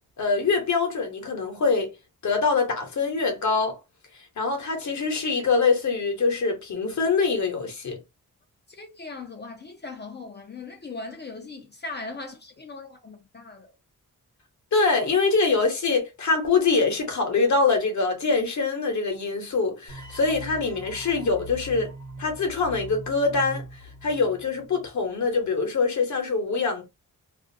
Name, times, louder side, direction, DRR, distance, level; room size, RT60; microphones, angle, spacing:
voice 1, 0.2-1.9 2.2-3.8 4.4-8.0 14.7-21.9 22.2-23.6 24.0-26.8, left 4 dB, 55° left, 0.9 m, -24 dB
voice 2, 8.7-13.7, left 3 dB, 30° left, 0.5 m, -39 dB
sound 1, 19.9-25.0, right 1 dB, 55° right, 0.9 m, -41 dB
2.4 x 2.0 x 2.5 m
wide cardioid pair, 135°, 34 cm